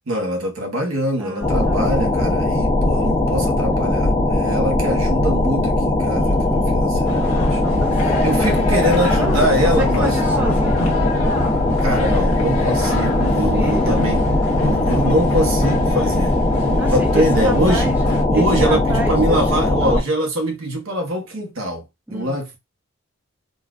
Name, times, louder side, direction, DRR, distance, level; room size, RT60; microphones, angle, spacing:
voice 1, 0.1-7.6 8.2-10.2 11.8-14.2 14.6-16.3 16.6-17.9 18.3-21.8 22.1-22.6, right 1 dB, 65° right, 1.0 m, -23 dB
voice 2, 1.2-1.9 6.1-8.5 9.1-11.0 13.1-14.0 16.8-18.0 18.3-19.5 19.8-20.0 22.1-22.4, right 1 dB, 10° right, 0.3 m, -29 dB
sound 1, 1.4-20.0, left 2 dB, 25° left, 1.1 m, -19 dB
sound 2, 7.1-18.2, left 2 dB, 75° left, 1.0 m, -30 dB
3.9 x 2.4 x 2.4 m
head